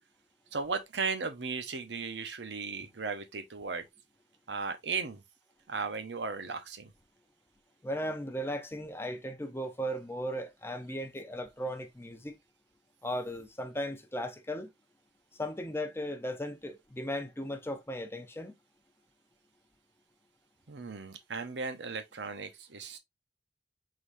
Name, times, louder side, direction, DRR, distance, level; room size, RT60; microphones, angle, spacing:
voice 1, 0.5-3.9 4.5-5.2 5.7-6.9 20.7-23.0, right 4 dB, 75° right, 0.8 m, -36 dB
voice 2, 7.8-12.4 13.0-14.7 15.4-18.5, equal, 15° left, 0.7 m, -36 dB
4.8 x 3.9 x 2.6 m
head